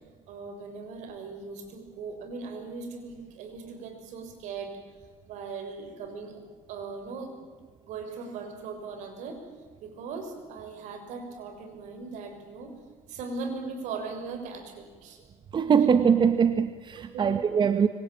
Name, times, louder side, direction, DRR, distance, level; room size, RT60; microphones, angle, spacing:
voice 1, 0.3-4.7 5.3-6.4 6.7-7.3 7.8-9.4 9.8-12.7 13.1-15.2 17.0-17.4, right 4 dB, 75° right, 6 dB, 6.5 m, -39 dB
voice 2, 15.5-17.9, right 7 dB, 40° right, 10 dB, 1.5 m, -22 dB
25.0 x 25.0 x 8.9 m, 1.5 s
cardioid pair, 100°, 13 cm